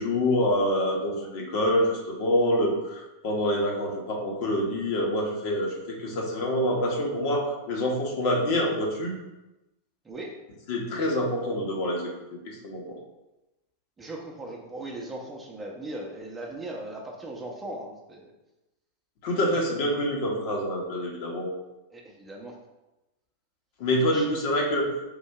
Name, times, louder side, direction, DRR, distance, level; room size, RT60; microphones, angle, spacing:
voice 1, 0.0-9.1 10.7-12.1 12.4-12.8 19.2-21.5 23.8-24.9, left 1 dB, 50° left, -1 dB, 1.1 m, -26 dB
voice 2, 10.0-10.4 14.0-18.3 21.9-22.6 24.0-24.4, right 1 dB, 15° right, -1 dB, 0.8 m, -38 dB
3.9 x 2.7 x 4.4 m, 1.0 s
figure-of-eight pair, 90°, 0 cm